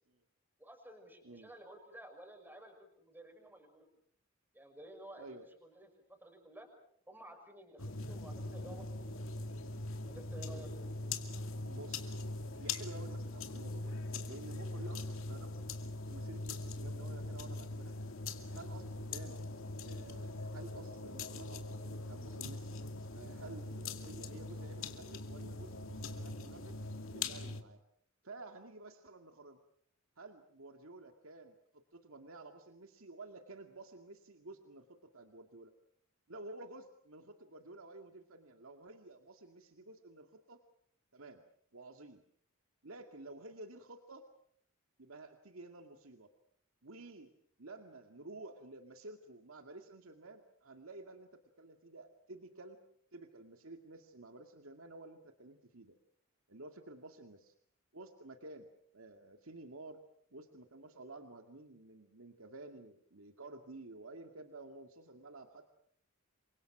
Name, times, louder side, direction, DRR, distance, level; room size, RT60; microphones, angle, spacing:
voice 1, 0.6-3.9 4.5-6.7 7.1-9.1 10.0-10.7, right 1 dB, 10° right, 4 dB, 6.1 m, -53 dB
sound 1, 7.8-27.6, left 2 dB, 75° left, 2.4 m, -42 dB
voice 2, 11.7-12.2 12.5-14.0 14.3-15.6 16.1-18.1 18.5-19.4 19.8-22.7 23.1-26.8 27.1-27.8 28.2-29.6 30.2-35.7 36.3-40.6 41.1-41.4 41.7-42.2 42.8-44.2 45.0-46.3 46.8-47.3 47.6-52.8 53.1-56.0 56.5-57.5 57.9-58.7 58.9-60.0 60.3-65.7, right 2 dB, 80° right, 5 dB, 2.2 m, -52 dB
29.0 x 25.0 x 6.1 m, 0.64 s
head